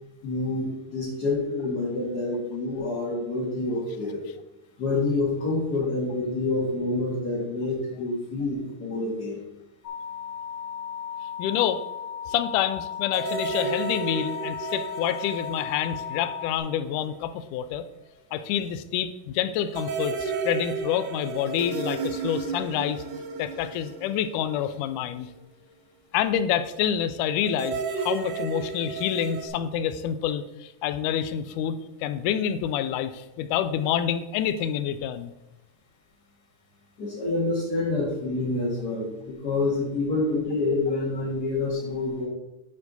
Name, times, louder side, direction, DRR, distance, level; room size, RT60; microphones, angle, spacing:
voice 1, 0.2-4.2 4.8-9.4 37.0-42.3, left 2 dB, 40° left, -6 dB, 1.8 m, -27 dB
sound 1, 9.8-16.6, left 8 dB, 70° left, 2.3 m, -36 dB
voice 2, 11.4-11.8 12.3-17.8 18.3-23.0 23.4-25.3 26.1-31.8 32.0-35.3, left 9 dB, 90° left, 11 dB, 2.1 m, -27 dB
sound 2, 13.1-16.9 17.1-17.2 19.7-25.1 27.5-29.5, right 5 dB, 70° right, 2.1 m, -33 dB
11.0 x 4.6 x 4.0 m, 0.94 s
omnidirectional pair, 3.6 m